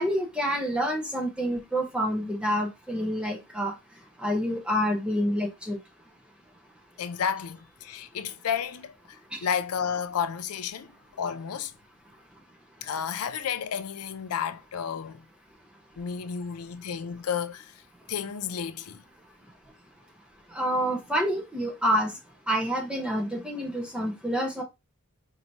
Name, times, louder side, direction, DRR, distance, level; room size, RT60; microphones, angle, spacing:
voice 1, 0.0-3.7 4.2-5.8 20.5-22.1 22.5-24.6, equal, 5° right, 0.9 m, -27 dB
voice 2, 7.0-10.9 11.2-11.7 12.8-15.3 16.0-17.7 18.1-19.0, left 7 dB, 90° left, 0.5 m, -32 dB
4.6 x 2.9 x 2.7 m
head